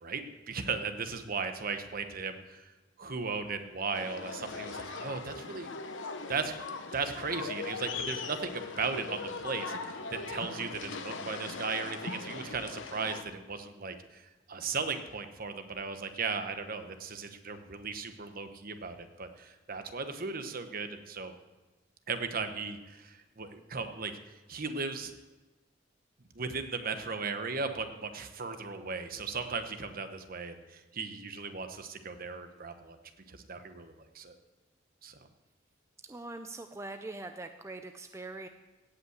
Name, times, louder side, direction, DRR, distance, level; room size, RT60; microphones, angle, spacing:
voice 1, 0.0-5.7 6.3-6.6 6.9-21.3 22.1-24.2 24.5-25.1 26.3-33.0 33.3-34.3 35.0-35.2, right 4 dB, 50° right, 8 dB, 1.1 m, -37 dB
sound 1, 3.9-13.2, left 4 dB, 75° left, 1.0 m, -40 dB
voice 2, 36.1-38.5, right 2 dB, 15° right, 7 dB, 0.5 m, -42 dB
16.5 x 5.6 x 8.0 m, 1.1 s
head